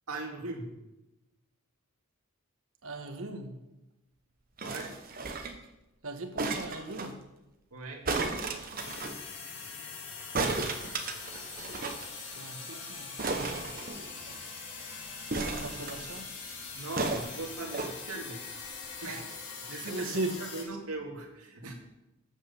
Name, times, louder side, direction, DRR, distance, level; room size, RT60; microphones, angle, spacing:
voice 1, 0.1-0.7 4.6-4.9 7.7-8.0 16.7-18.4 18.7-19.2 19.6-20.1 20.4-21.7, right 2 dB, 85° right, 1 dB, 2.2 m, -40 dB
voice 2, 2.8-3.5 6.0-7.2 12.3-13.1 15.4-16.3 19.1-19.2 19.9-20.3, right 2 dB, 65° right, 6 dB, 1.3 m, -38 dB
sound 1, 4.6-5.7 6.4-7.1 8.0-9.2 10.3-12.0 12.3-12.4 12.6-12.8 13.2-14.4 15.3-16.2 17.0-17.9 18.7-18.8, right 3 dB, 40° right, 1.0 m, -34 dB
sound 2, 8.8-20.6, left 4 dB, 55° left, 2.1 m, -42 dB
8.8 x 7.4 x 6.9 m, 0.96 s
head